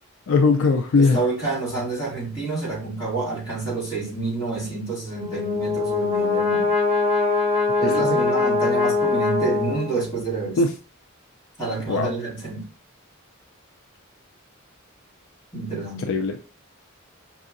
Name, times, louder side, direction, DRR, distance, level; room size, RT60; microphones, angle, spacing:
voice 1, 0.3-1.2 7.8-8.2 10.6-10.7 11.9-12.1 16.0-16.4, left 4 dB, 65° left, 0.4 m, -20 dB
voice 2, 1.0-6.7 7.8-10.6 11.6-12.7 15.5-16.0, right 3 dB, 20° left, 2.1 m, -28 dB
Brass instrument, 5.1-10.2, left 4 dB, 25° right, 1.1 m, -22 dB
5.4 x 2.7 x 2.5 m
head